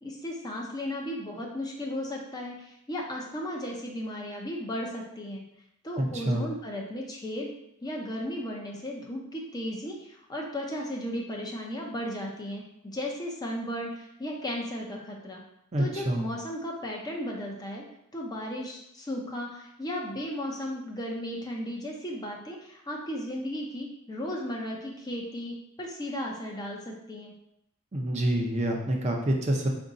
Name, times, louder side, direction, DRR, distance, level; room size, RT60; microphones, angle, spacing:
voice 1, 0.0-5.4 5.8-7.5 7.8-15.4 15.8-17.8 18.1-27.3, equal, 20° left, -1 dB, 0.5 m, -35 dB
voice 2, 6.0-6.4 15.7-16.2 27.9-29.7, right 1 dB, 30° right, 0 dB, 0.5 m, -27 dB
4.5 x 2.6 x 3.9 m, 0.80 s
head